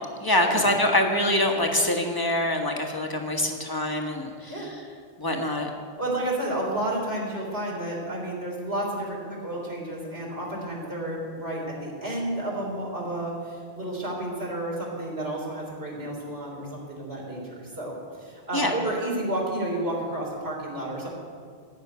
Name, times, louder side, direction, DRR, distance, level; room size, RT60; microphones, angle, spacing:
voice 1, 0.2-4.7 5.2-5.7 18.5-18.7, left 1 dB, 20° left, 2 dB, 1.4 m, -25 dB
voice 2, 6.0-21.1, right 1 dB, 75° right, -3 dB, 3.9 m, -31 dB
14.5 x 6.3 x 9.3 m, 2.1 s
omnidirectional pair, 1.1 m